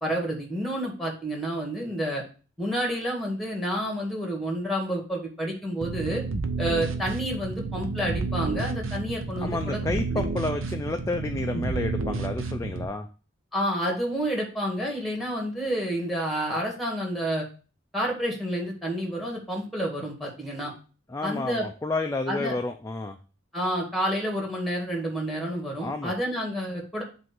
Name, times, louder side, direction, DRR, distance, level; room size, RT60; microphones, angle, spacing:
voice 1, 0.0-2.2 2.6-6.2 6.6-9.8 10.1-10.2 11.5-11.6 13.5-17.4 17.9-20.7 21.2-21.7 22.3-22.5 23.5-27.0, equal, ahead, 0 dB, 1.8 m, -29 dB
sound 1, 5.8-12.9, right 3 dB, 85° right, 0.7 m, -31 dB
voice 2, 9.4-13.1 21.1-23.2 25.8-26.1, left 2 dB, 15° left, 5 dB, 0.4 m, -30 dB
7.7 x 2.7 x 5.9 m, 0.37 s
head